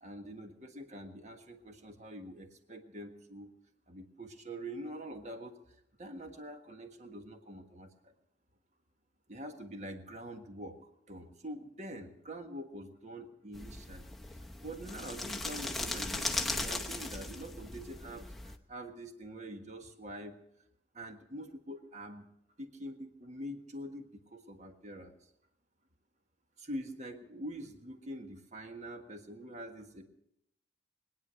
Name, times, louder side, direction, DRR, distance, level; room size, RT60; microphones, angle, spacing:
voice 1, 0.0-3.5 3.9-5.6 6.0-8.1 9.3-10.8 11.1-14.1 14.4-20.4 20.9-22.3 22.6-25.1 26.6-30.0, right 1 dB, 40° right, 5 dB, 1.5 m, -45 dB
sound 1, 13.5-18.6, left 2 dB, ahead, 0.8 m, -38 dB
21.5 x 9.8 x 6.3 m, 0.80 s
head